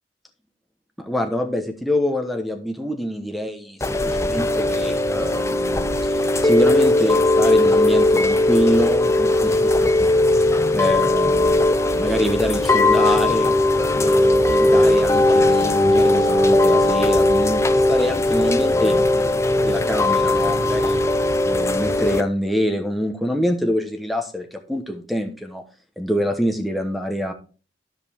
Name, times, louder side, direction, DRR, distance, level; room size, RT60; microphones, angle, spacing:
voice 1, 1.0-6.1 6.4-10.1 10.7-11.6 11.9-13.5 13.9-21.0 21.4-25.6 26.0-27.3, equal, ahead, 5 dB, 1.1 m, -25 dB
Chime / Rain, 3.8-22.2, left 2 dB, 15° left, 0.4 m, -18 dB
13.0 x 5.2 x 3.5 m, 0.36 s
head